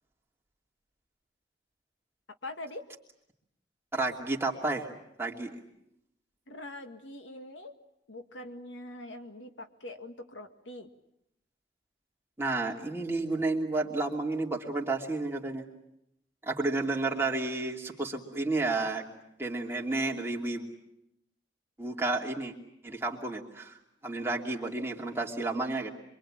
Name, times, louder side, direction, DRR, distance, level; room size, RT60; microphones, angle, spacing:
voice 1, 2.4-2.8 6.5-7.7 8.1-10.9, left 1 dB, 85° left, 7 dB, 2.0 m, -43 dB
voice 2, 3.9-4.9 5.2-5.5 12.4-15.6 16.4-19.0 19.4-20.7 21.8-22.5 22.8-23.7 24.0-25.9, right 2 dB, 15° right, -1 dB, 2.8 m, -31 dB
26.5 x 24.0 x 8.9 m, 0.80 s
head